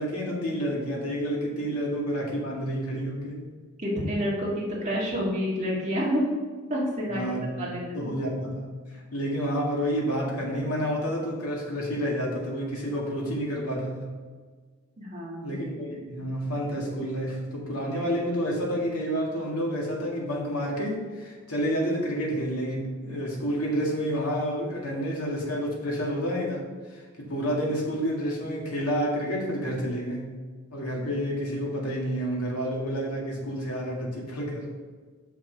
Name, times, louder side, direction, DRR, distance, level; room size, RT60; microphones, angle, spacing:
voice 1, 0.0-3.4 7.1-7.7 7.9-8.7 9.1-14.1 15.4-30.3 30.7-34.7, equal, 90° left, -2 dB, 2.1 m, -29 dB
voice 2, 3.8-6.2 6.7-8.2 15.0-15.5, equal, 30° right, -5 dB, 2.1 m, -29 dB
6.5 x 5.9 x 5.3 m, 1.5 s
head